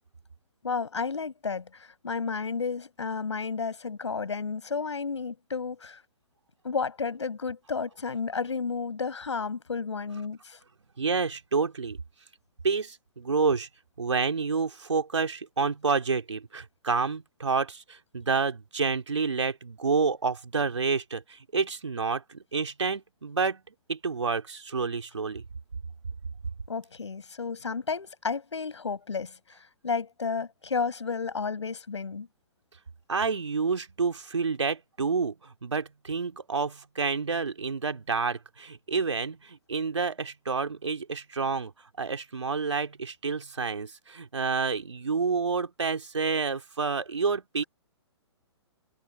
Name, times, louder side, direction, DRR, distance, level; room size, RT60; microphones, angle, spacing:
voice 1, 0.6-6.0 6.6-10.6 26.7-32.3, left 5 dB, 75° left, 7.5 m, -32 dB
voice 2, 11.0-12.0 12.6-13.7 14.0-23.6 23.9-25.4 33.1-41.7 42.0-47.6, right 4 dB, 80° right, 3.2 m, -29 dB
figure-of-eight pair, 125°, 15 cm